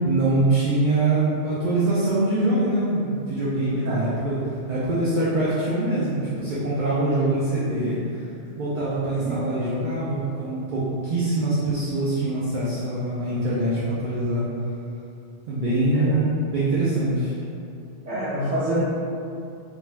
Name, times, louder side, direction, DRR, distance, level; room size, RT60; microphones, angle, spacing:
voice 1, 0.0-8.2 8.6-14.4 15.5-17.4, right 2 dB, 60° right, -9 dB, 0.5 m, -24 dB
voice 2, 9.2-9.6 15.9-16.2 18.0-18.8, right 1 dB, 80° right, -11 dB, 1.1 m, -27 dB
2.5 x 2.3 x 3.1 m, 2.5 s
omnidirectional pair, 1.2 m